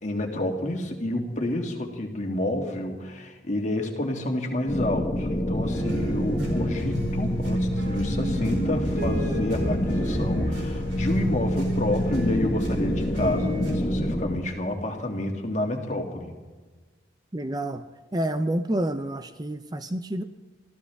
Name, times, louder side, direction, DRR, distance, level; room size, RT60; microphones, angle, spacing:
voice 1, 0.0-16.4, left 1 dB, 40° left, 2 dB, 2.3 m, -29 dB
sound 1, 4.7-14.4, equal, 25° left, 1.2 m, -27 dB
sound 2, 5.6-13.8, equal, 75° right, 4.8 m, -32 dB
voice 2, 17.3-20.2, right 1 dB, 20° right, 10 dB, 0.6 m, -29 dB
25.5 x 15.0 x 3.5 m, 1.3 s
head